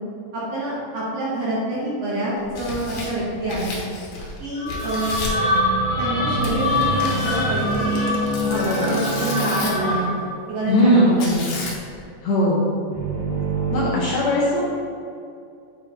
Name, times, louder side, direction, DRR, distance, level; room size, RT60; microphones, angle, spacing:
voice 1, 0.3-3.7 4.4-5.2 6.0-8.0 8.5-10.1 10.5-11.5, right 1 dB, 60° right, -8 dB, 2.1 m, -26 dB
Tearing, 2.4-4.4 4.7-5.4 6.4-9.9 11.2-12.0, left 2 dB, 85° left, 2.8 m, -33 dB
sound 1, 4.5-10.3, left 2 dB, 55° left, 2.1 m, -25 dB
sound 2, 5.3-10.7 12.9-13.9, right 2 dB, 75° right, 1.5 m, -27 dB
voice 2, 8.4-8.9 10.7-11.2 12.2-12.6 13.7-14.6, equal, 70° left, -6 dB, 1.8 m, -19 dB
7.7 x 4.0 x 3.4 m, 2.5 s
omnidirectional pair, 3.9 m